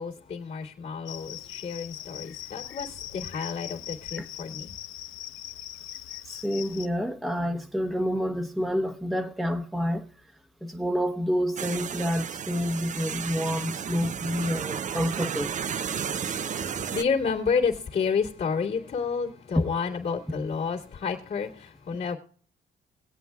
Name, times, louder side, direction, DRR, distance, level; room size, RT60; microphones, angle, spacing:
voice 1, 0.0-4.7 15.8-22.2, left 5 dB, 55° left, 2.4 m, -30 dB
Cricket, 1.1-6.9, left 13 dB, 90° left, 0.6 m, -40 dB
voice 2, 6.3-10.1 10.6-15.5, equal, ahead, 0.9 m, -28 dB
sound 1, 11.6-17.0, right 7 dB, 40° right, 0.5 m, -33 dB
20.5 x 8.2 x 2.3 m
cardioid pair, 90°, 20 cm